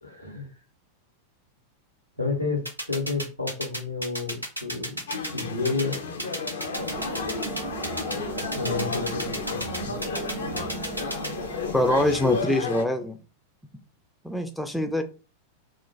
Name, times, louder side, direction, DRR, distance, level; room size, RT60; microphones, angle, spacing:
voice 1, 0.0-0.5 2.2-5.0 5.3-6.0 8.5-9.9, left 4 dB, 90° left, 0 dB, 0.9 m, -30 dB
sound 1, 2.7-11.3, right 1 dB, 90° right, 0.6 m, -32 dB
sound 2, 5.1-12.8, left 4 dB, 65° left, 0.4 m, -32 dB
sound 3, 6.8-12.4, right 5 dB, 40° right, 0.6 m, -38 dB
voice 2, 11.7-13.2 14.2-15.0, left 1 dB, 5° left, 6 dB, 0.3 m, -24 dB
2.4 x 2.1 x 3.1 m, 0.34 s
figure-of-eight pair, 90°, 0 cm